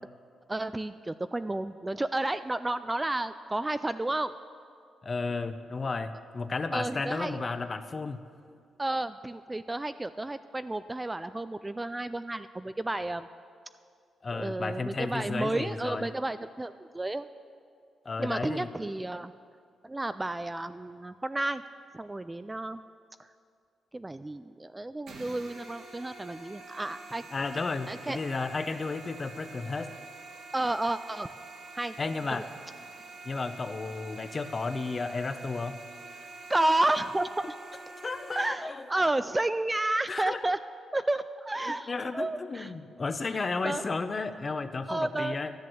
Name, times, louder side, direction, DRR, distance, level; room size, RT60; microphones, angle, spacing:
voice 1, 0.5-4.3 6.7-7.5 8.8-13.3 14.3-17.3 18.2-19.3 19.8-21.6 21.9-22.8 23.9-27.2 27.9-28.2 30.5-31.3 31.7-32.0 32.3-32.5 36.5-37.5 38.4-40.6 40.9-42.7 43.6-43.8 44.9-45.4, right 2 dB, 15° right, 12 dB, 0.3 m, -31 dB
voice 2, 5.0-8.2 14.2-16.1 18.0-18.7 27.3-29.9 32.0-32.4 33.2-35.7 38.0-38.9 40.1-40.4 41.9-45.5, left 3 dB, 30° left, 10 dB, 0.7 m, -33 dB
sound 1, 25.1-38.5, right 3 dB, 75° right, 2.1 m, -47 dB
12.0 x 10.5 x 7.8 m, 2.3 s
cardioid pair, 105°, 0 cm